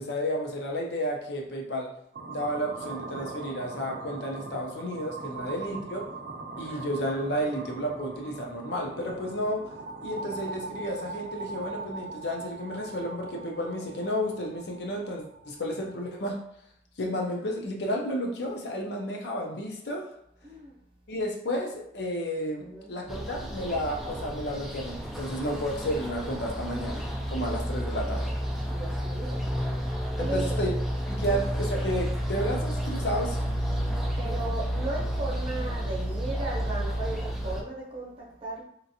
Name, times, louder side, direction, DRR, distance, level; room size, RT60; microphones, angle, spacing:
voice 1, 0.0-1.9 2.3-6.1 6.6-9.6 10.0-16.4 17.0-20.0 21.1-28.3 30.2-30.7 31.1-33.4, equal, 70° left, 0 dB, 0.6 m, -32 dB
sound 1, 2.1-16.2, right 3 dB, 70° right, 0.5 m, -41 dB
voice 2, 5.4-5.8 6.6-6.9 20.4-20.7 22.6-22.9 28.7-29.4 30.2-30.6 31.3-31.4 34.2-38.6, right 2 dB, 30° right, -4 dB, 0.8 m, -36 dB
sound 2, 23.1-37.6, equal, ahead, 0.3 m, -31 dB
2.9 x 2.4 x 2.7 m, 0.73 s
head